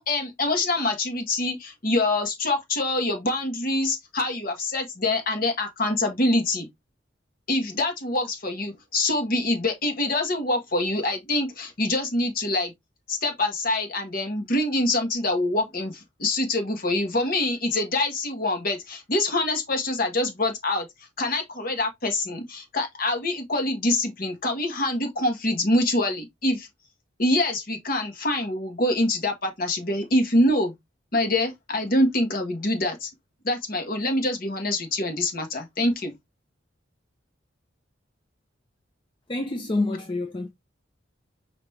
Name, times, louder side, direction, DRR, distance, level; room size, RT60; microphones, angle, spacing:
voice 1, 0.0-6.7 7.5-12.7 13.1-20.9 21.2-26.7 27.2-30.7 31.1-33.1 33.4-36.1, left 1 dB, 50° left, 1.4 m, -25 dB
voice 2, 39.3-40.5, left 2 dB, 25° left, 0.5 m, -27 dB
5.3 x 2.9 x 3.2 m
head